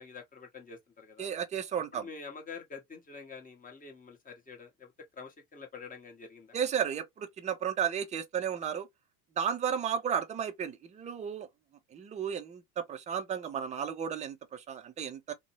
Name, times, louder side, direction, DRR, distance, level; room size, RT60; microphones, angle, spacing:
voice 1, 0.0-1.3 1.9-6.6, left 5 dB, 20° left, 1.0 m, -47 dB
voice 2, 1.2-2.1 6.5-8.9 9.4-11.5 11.9-15.3, right 8 dB, 15° right, 0.4 m, -33 dB
2.6 x 2.1 x 2.8 m
hypercardioid pair, 80°, 44 cm